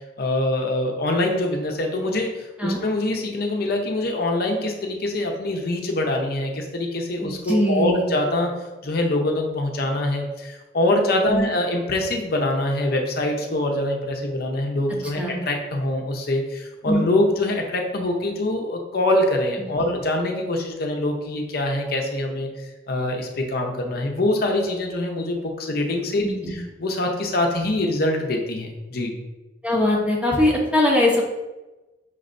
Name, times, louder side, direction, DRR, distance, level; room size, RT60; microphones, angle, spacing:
voice 1, 0.2-2.3 2.6-8.5 8.8-15.2 15.5-22.5 22.9-26.2 26.5-29.1, left 1 dB, 60° left, 2 dB, 0.7 m, -24 dB
voice 2, 7.2-8.0 11.3-11.5 15.2-15.4 16.9-17.1 26.2-26.5 29.6-31.3, left 1 dB, 5° right, -2 dB, 0.8 m, -21 dB
5.9 x 3.2 x 2.6 m, 1.1 s
head